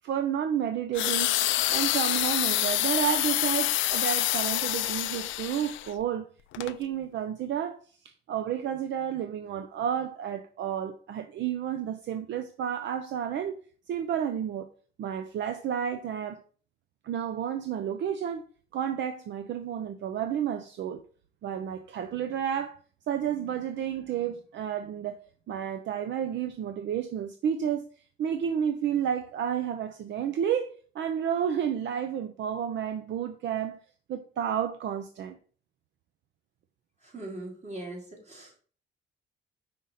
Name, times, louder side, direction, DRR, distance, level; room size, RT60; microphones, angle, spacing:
voice 1, 0.0-6.3 6.6-13.6 13.9-14.7 15.0-16.4 17.0-18.4 18.7-21.0 21.4-22.8 23.1-25.2 25.5-27.9 28.2-33.8 34.1-35.4, right 9 dB, 65° right, 0.6 m, -31 dB
sound 1, 0.9-5.9 6.5-6.7, left 15 dB, 80° left, 0.4 m, -27 dB
voice 2, 37.0-38.6, right 2 dB, 35° right, 2.7 m, -40 dB
5.5 x 5.2 x 4.1 m
cardioid pair, 90°, 20 cm